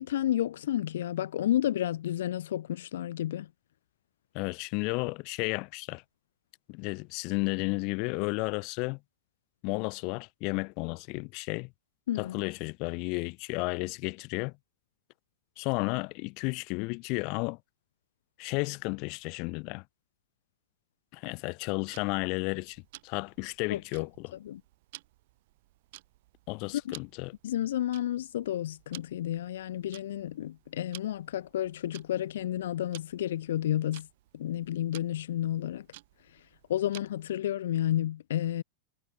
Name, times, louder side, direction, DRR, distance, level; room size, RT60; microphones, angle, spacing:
voice 1, 0.0-3.5 12.1-12.4 23.7-23.8 24.4-24.6 26.7-27.0 27.4-34.1 34.3-35.9 36.3-36.4 36.7-38.6, left 12 dB, 85° left, 0.5 m, -31 dB
voice 2, 4.3-6.0 6.7-9.0 9.6-11.7 12.2-14.5 15.6-17.6 18.4-19.8 21.1-24.3 26.5-27.3, left 31 dB, 40° left, 1.1 m, -33 dB
Tick-tock, 21.9-37.3, right 19 dB, 55° right, 3.6 m, -54 dB
supercardioid pair, 165°, 0 cm